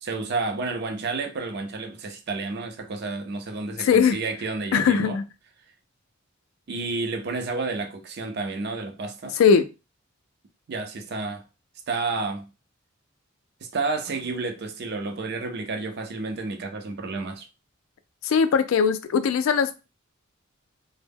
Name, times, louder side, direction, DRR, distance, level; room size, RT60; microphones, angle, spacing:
voice 1, 0.0-5.2 6.7-9.4 10.7-11.4 11.9-12.5 13.6-17.5, right 3 dB, 55° right, 0.5 m, -30 dB
voice 2, 3.8-4.2 4.7-5.2 9.3-9.7 18.2-19.8, left 6 dB, 80° left, 0.3 m, -20 dB
2.0 x 2.0 x 3.4 m
head